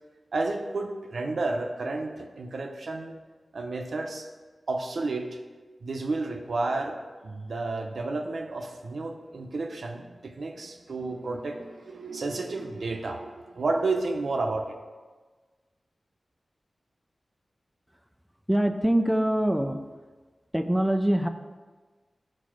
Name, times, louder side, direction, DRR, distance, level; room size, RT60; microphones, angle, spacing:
voice 1, 0.3-3.2 3.5-4.3 4.7-5.4 5.8-14.7, right 3 dB, 75° right, 3 dB, 0.7 m, -31 dB
voice 2, 18.5-19.8 20.5-21.3, right 1 dB, 5° right, 7 dB, 0.4 m, -24 dB
6.8 x 4.1 x 6.3 m, 1.4 s
wide cardioid pair, 90°, 0 cm